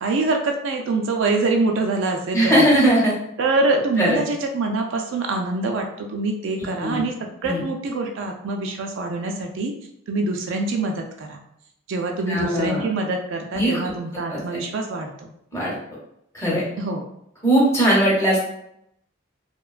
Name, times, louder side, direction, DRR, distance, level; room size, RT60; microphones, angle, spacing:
voice 1, 0.0-2.7 3.4-9.7 10.1-11.4 11.9-15.3 16.8-17.0, right 3 dB, 60° right, 2 dB, 0.3 m, -25 dB
voice 2, 2.3-3.2 4.0-4.2 6.8-7.1 7.4-7.6 12.3-12.9 13.5-13.9 14.3-14.4 15.5-15.8 16.3-16.6 17.4-18.4, right 1 dB, 15° left, -5 dB, 0.7 m, -19 dB
2.8 x 2.2 x 2.3 m, 0.77 s
head